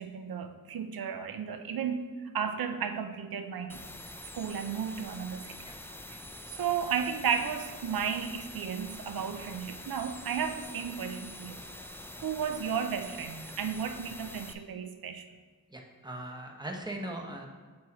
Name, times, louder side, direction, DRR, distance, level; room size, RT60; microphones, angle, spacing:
voice 1, 0.0-2.0 2.3-3.8 4.3-5.6 6.1-6.2 6.5-11.6 12.2-15.3, right 7 dB, 80° right, 8 dB, 0.6 m, -33 dB
sound 1, 3.7-14.5, left 1 dB, 5° left, 0.4 m, -45 dB
voice 2, 15.7-17.5, right 1 dB, 10° right, 1 dB, 1.0 m, -39 dB
6.5 x 4.6 x 4.1 m, 1.5 s
wide cardioid pair, 70°, 36 cm